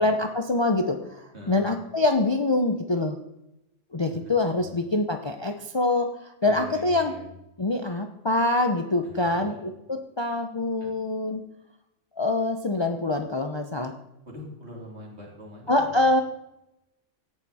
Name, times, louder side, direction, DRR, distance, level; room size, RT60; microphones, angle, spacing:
voice 1, 0.0-3.2 3.9-7.1 7.6-11.4 12.2-13.9 15.7-16.2, left 2 dB, 30° left, 6 dB, 0.6 m, -25 dB
voice 2, 1.3-1.7 4.1-4.2 6.4-7.3 9.0-9.6 10.8-10.9 14.2-16.1, left 1 dB, 55° right, -2 dB, 3.5 m, -43 dB
17.0 x 7.0 x 4.2 m, 0.89 s
omnidirectional pair, 1.3 m